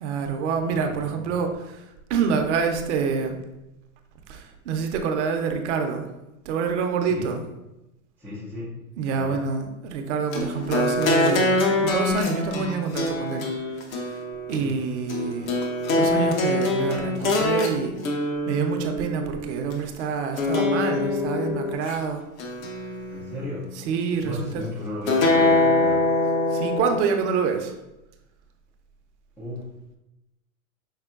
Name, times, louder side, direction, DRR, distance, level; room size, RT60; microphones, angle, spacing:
voice 1, 0.0-1.8 2.1-3.4 4.3-6.0 6.5-7.4 9.0-13.5 13.9-14.2 14.5-15.5 15.9-17.9 18.5-22.2 23.9-24.6 26.5-27.7, right 6 dB, 55° right, 5 dB, 0.7 m, -27 dB
voice 2, 0.6-1.3 7.1-7.4 8.2-8.8 9.1-9.5 14.6-14.8 23.1-23.7 24.2-26.1 29.4-29.7, left 1 dB, 5° left, -10 dB, 0.3 m, -35 dB
sound 1, 10.3-19.8 20.4-22.0 22.4-23.5 25.1-27.0, left 2 dB, 70° left, 1.0 m, -24 dB
5.6 x 3.6 x 2.4 m, 0.94 s
hypercardioid pair, 125°, 43 cm